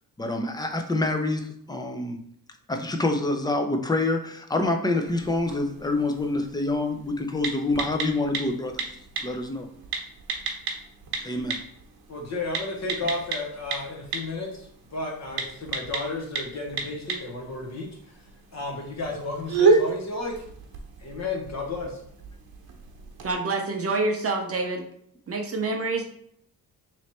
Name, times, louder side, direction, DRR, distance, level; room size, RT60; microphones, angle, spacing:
voice 1, 0.2-2.2 2.7-9.7 11.2-11.6, left 2 dB, 10° left, 5 dB, 0.4 m, -27 dB
sound 1, 5.1-23.3, right 4 dB, 75° right, 0.9 m, -32 dB
voice 2, 12.1-18.2 18.5-20.3 21.0-22.0, left 3 dB, 45° left, 0 dB, 1.1 m, -33 dB
voice 3, 23.2-24.9 25.3-26.0, right 3 dB, 40° right, 3 dB, 0.6 m, -27 dB
3.1 x 3.1 x 4.1 m, 0.69 s
cardioid pair, 120°, 37 cm